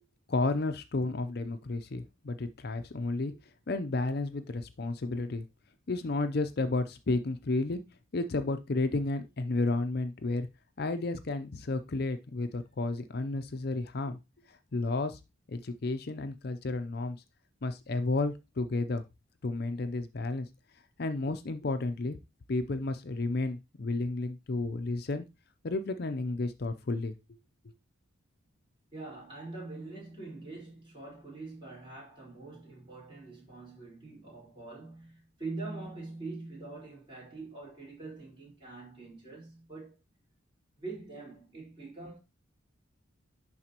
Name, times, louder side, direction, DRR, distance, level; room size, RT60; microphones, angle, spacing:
voice 1, 0.3-3.3 3.7-5.4 5.9-7.8 8.1-10.5 10.8-14.2 14.7-15.2 15.5-17.2 17.6-19.0 19.4-20.5 21.0-22.2 22.5-25.2 25.6-27.1, left 2 dB, 50° left, 0.5 m, -32 dB
voice 2, 28.9-40.0 40.8-42.2, right 3 dB, 25° right, 4.4 m, -44 dB
11.0 x 4.0 x 2.9 m
head